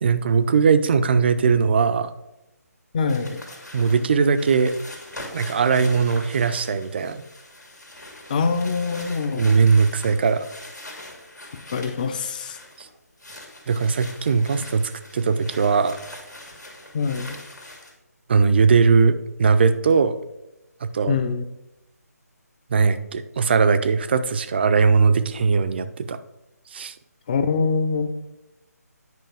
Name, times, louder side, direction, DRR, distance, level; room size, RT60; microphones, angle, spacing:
voice 1, 0.0-2.1 3.7-4.7 5.3-7.2 9.4-10.5 12.8-12.9 13.7-16.0 18.3-20.2 20.8-21.2 22.7-26.2 26.7-26.9, right 5 dB, 40° right, 11 dB, 0.5 m, -19 dB
voice 2, 2.9-3.4 8.3-9.5 11.5-12.6 16.9-17.4 21.1-21.4 27.3-28.1, left 5 dB, 30° left, 9 dB, 0.6 m, -24 dB
sound 1, 3.1-12.9 13.2-17.9, left 1 dB, 90° left, 2.2 m, -42 dB
9.4 x 5.3 x 3.5 m, 0.94 s
figure-of-eight pair, 150°, 9 cm